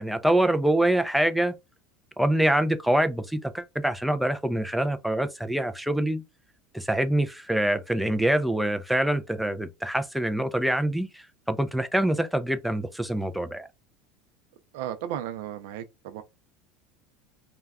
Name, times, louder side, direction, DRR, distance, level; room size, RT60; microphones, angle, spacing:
voice 1, 0.0-1.5 2.2-6.2 6.7-13.7, right 1 dB, ahead, 0.4 m, -25 dB
voice 2, 14.7-16.2, right 11 dB, 75° right, 0.4 m, -34 dB
2.3 x 2.2 x 3.4 m
supercardioid pair, 115°, 0 cm